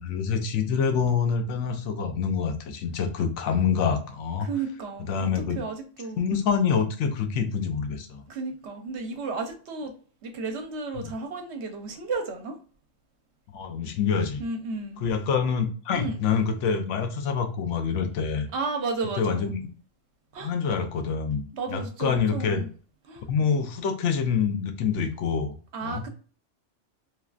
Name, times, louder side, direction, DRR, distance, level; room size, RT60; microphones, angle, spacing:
voice 1, 0.0-4.5 5.0-5.6 6.2-8.2 11.0-11.1 13.5-14.4 15.0-18.5 19.2-19.7 20.4-22.6 23.3-25.5 25.8-26.1, left 6 dB, 75° left, 0.9 m, -26 dB
voice 2, 4.4-6.2 8.3-9.9 10.2-12.6 14.4-15.0 15.9-16.2 18.5-19.5 20.3-20.5 21.5-22.7 23.1-23.2 25.7-26.1, right 4 dB, 70° right, 0.9 m, -33 dB
3.1 x 2.4 x 2.3 m
omnidirectional pair, 1.2 m